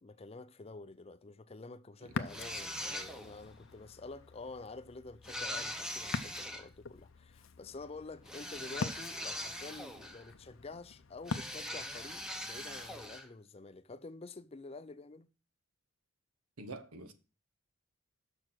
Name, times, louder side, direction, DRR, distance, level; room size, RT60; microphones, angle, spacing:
voice 1, 0.0-15.3, left 3 dB, 30° left, 0.5 m, -48 dB
Ocean, 2.1-13.2, left 4 dB, 60° left, 0.7 m, -45 dB
sound 1, 2.3-3.4 5.2-6.7 8.3-10.3 11.3-13.3, equal, 5° right, 0.8 m, -41 dB
voice 2, 16.6-17.1, right 2 dB, 90° right, 1.3 m, -45 dB
6.5 x 6.3 x 6.0 m
head